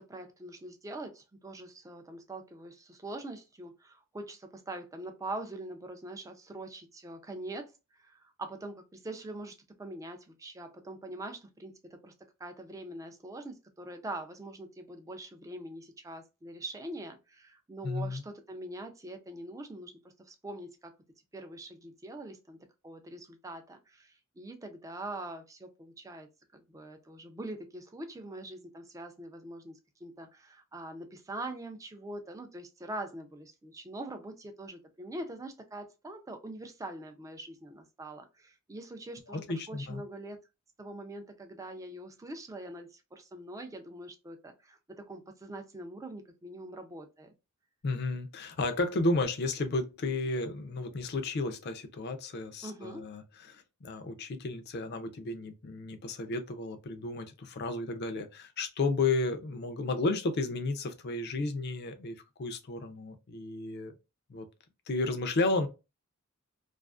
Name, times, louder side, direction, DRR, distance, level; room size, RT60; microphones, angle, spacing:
voice 1, 0.0-7.7 8.0-12.1 12.4-19.9 20.2-20.9 21.3-22.6 22.8-40.4 40.8-47.3 52.6-53.0, right 1 dB, 15° right, 0.4 m, -43 dB
voice 2, 17.8-18.2 39.3-40.0 47.8-53.2 53.5-63.9 64.3-64.5 64.9-65.7, left 3 dB, 50° left, 0.4 m, -32 dB
2.4 x 2.4 x 2.3 m
head